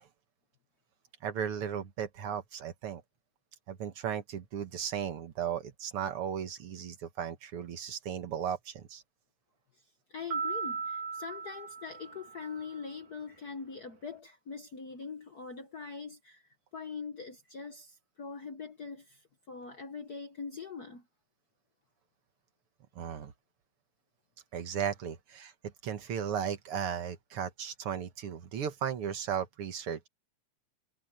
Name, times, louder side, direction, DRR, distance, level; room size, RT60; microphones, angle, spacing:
voice 1, 1.2-3.0 3.7-9.0 23.0-23.3 24.5-25.5 25.8-30.1, right 8 dB, 60° right, 1.7 m, -36 dB
voice 2, 9.7-21.1, left 5 dB, 70° left, 0.9 m, -43 dB
sound 1, 10.3-12.8, right 5 dB, 85° right, 4.2 m, -37 dB
omnidirectional pair, 3.6 m